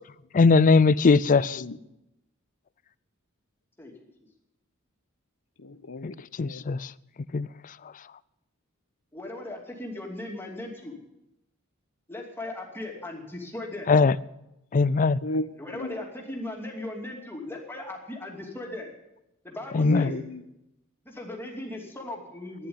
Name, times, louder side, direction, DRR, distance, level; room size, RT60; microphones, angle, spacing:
voice 1, 0.3-1.6 6.0-6.1 6.4-6.9 7.3-7.5 13.9-14.2 14.7-15.2 19.7-20.1, left 4 dB, 40° left, 18 dB, 0.4 m, -20 dB
voice 2, 1.4-1.8 5.6-6.6 15.2-16.0 19.7-20.4, left 1 dB, 75° left, 12 dB, 0.9 m, -34 dB
voice 3, 9.1-10.9 12.1-13.9 15.6-18.9 19.4-20.1 21.0-22.7, left 1 dB, 10° left, 0 dB, 2.7 m, -37 dB
11.5 x 10.5 x 9.6 m, 0.89 s
head